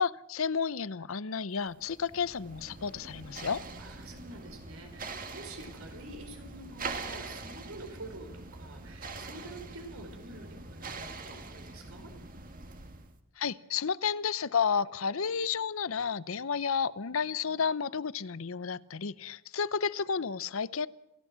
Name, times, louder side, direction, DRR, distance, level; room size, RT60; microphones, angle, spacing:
voice 1, 0.0-3.6 13.4-20.9, left 6 dB, 75° left, 0.7 m, -31 dB
sound 1, 1.7-13.2, right 3 dB, 40° right, 1.8 m, -43 dB
voice 2, 3.8-12.1, right 2 dB, 85° right, 4.7 m, -47 dB
28.5 x 15.0 x 7.5 m
head